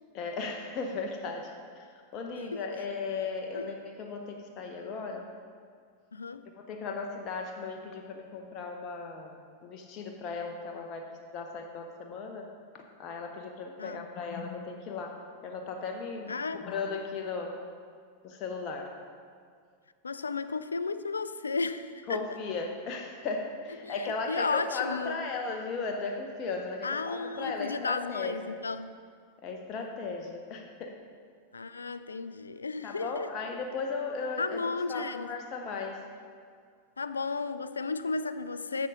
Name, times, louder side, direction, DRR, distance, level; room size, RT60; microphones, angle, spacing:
voice 1, 0.1-5.3 6.5-12.5 12.7-15.2 15.4-17.6 18.2-18.9 22.1-28.6 29.4-31.0 32.8-36.0, left 4 dB, 35° left, 2 dB, 0.7 m, -36 dB
voice 2, 6.1-6.5 13.8-14.0 16.3-16.7 20.0-22.2 23.8-25.3 26.8-28.9 31.5-33.3 34.4-35.3 37.0-38.9, left 4 dB, 75° left, 13 dB, 0.3 m, -33 dB
10.5 x 6.8 x 3.7 m, 2.1 s
figure-of-eight pair, 90°, 0 cm